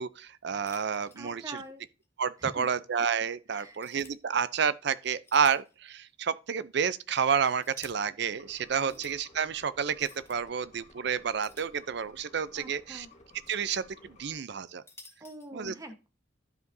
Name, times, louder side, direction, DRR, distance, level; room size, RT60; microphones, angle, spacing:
voice 1, 0.0-1.6 2.2-13.1 13.5-14.8 15.5-15.7, right 6 dB, 65° right, 0.5 m, -30 dB
sound 1, 0.7-1.7 2.0-2.1 2.7-2.8 3.6-4.1 5.0-5.8 6.1-6.2 7.1-7.9 8.7-9.1 9.9-10.4 11.4-12.2 13.1-13.8 14.6-15.5, left 3 dB, 15° left, 1.0 m, -53 dB
voice 2, 1.1-1.8 2.4-2.7 3.5-3.8 8.8-9.0 12.5-13.1 15.2-16.1, right 1 dB, 20° right, 1.1 m, -45 dB
sound 2, 8.4-14.4, left 2 dB, 40° left, 1.4 m, -56 dB
12.0 x 5.0 x 2.7 m
head